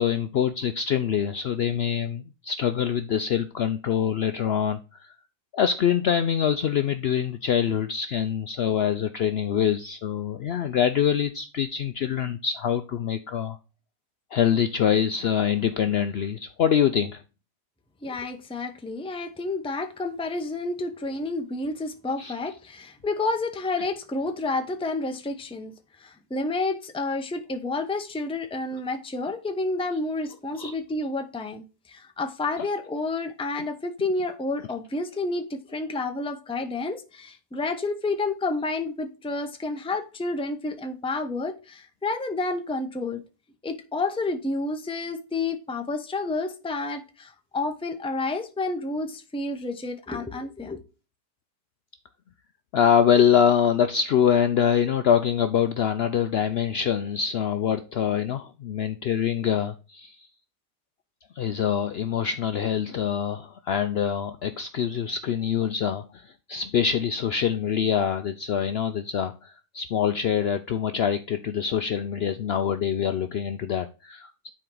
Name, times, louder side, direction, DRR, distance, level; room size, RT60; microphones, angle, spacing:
voice 1, 0.0-5.1 5.5-13.6 14.3-17.2 22.2-22.3 30.6-30.7 52.7-60.3 61.4-74.5, left 8 dB, 85° left, 0.5 m, -25 dB
voice 2, 18.0-43.2 43.6-50.8, left 3 dB, 5° left, 0.4 m, -30 dB
10.0 x 4.4 x 3.8 m
omnidirectional pair, 1.7 m